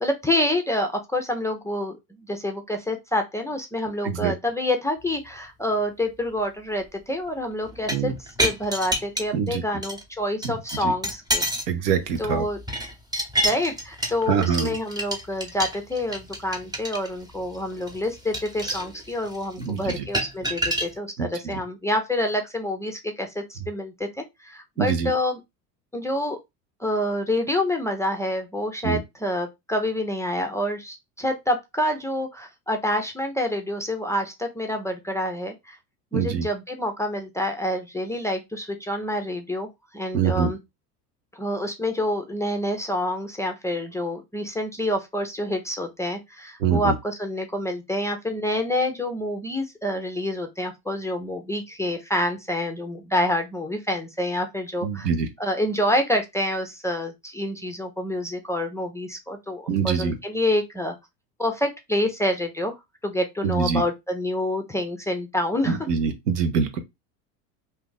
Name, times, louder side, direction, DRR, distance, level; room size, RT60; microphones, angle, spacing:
voice 1, 0.0-11.4 12.2-12.6 13.4-24.1 24.4-25.4 25.9-26.4 26.8-35.8 36.1-40.6 41.3-55.1 55.4-61.0 61.4-62.8 63.0-65.9, left 1 dB, 5° left, 0.4 m, -27 dB
sound 1, 7.7-9.5 9.8-10.0 10.4-11.7 12.1-20.9, equal, 10° right, 0.8 m, -29 dB
voice 2, 11.7-12.4 14.3-14.7 19.6-20.1 21.2-21.3 24.8-25.1 28.8-29.0 36.1-36.5 40.1-40.5 46.6-47.0 54.8-55.3 59.7-60.2 63.4-63.8 65.7-66.8, right 6 dB, 90° right, 0.9 m, -24 dB
2.7 x 2.4 x 3.7 m
hypercardioid pair, 95°, 47 cm